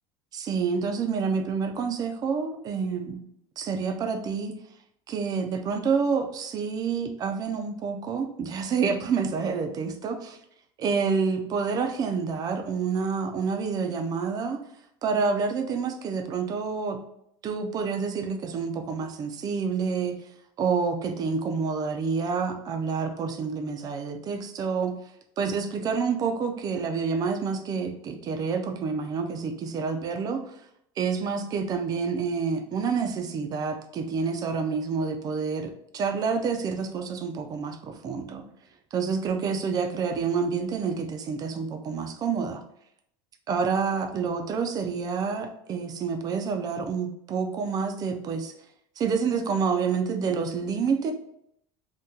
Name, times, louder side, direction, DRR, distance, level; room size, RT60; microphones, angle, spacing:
voice 1, 0.3-3.2 3.6-4.5 5.1-10.4 10.8-14.6 15.0-17.0 17.4-20.1 20.6-24.9 25.4-30.4 31.0-38.4 38.9-42.6 43.5-48.5 49.0-51.1, right 5 dB, 30° right, 6 dB, 0.4 m, -28 dB
2.7 x 2.2 x 3.6 m, 0.73 s
cardioid pair, 155°, 14 cm